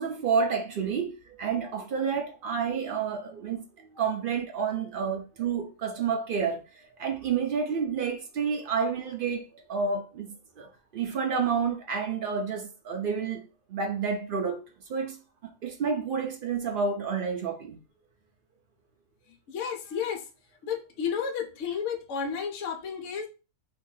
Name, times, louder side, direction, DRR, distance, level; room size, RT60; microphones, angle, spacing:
voice 1, 0.0-6.6 7.0-14.6 14.9-15.2 15.6-17.8, right 6 dB, 80° right, 0.4 m, -30 dB
voice 2, 19.5-20.2 20.6-23.3, left 7 dB, 60° left, 0.9 m, -32 dB
2.8 x 2.6 x 3.8 m
omnidirectional pair, 1.6 m